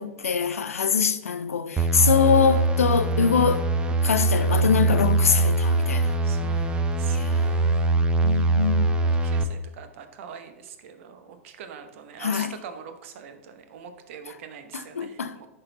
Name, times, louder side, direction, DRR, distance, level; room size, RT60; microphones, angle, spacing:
voice 1, 0.0-3.6 4.0-6.1 7.1-7.6 8.2-9.0 12.2-12.5 14.7-15.4, left 7 dB, 90° left, 0.5 m, -24 dB
sound 1, 1.8-9.4, right 2 dB, 15° right, 0.6 m, -22 dB
voice 2, 6.2-8.5 9.0-15.5, right 7 dB, 60° right, 0.9 m, -43 dB
10.5 x 3.9 x 4.0 m
hypercardioid pair, 105°, 8 cm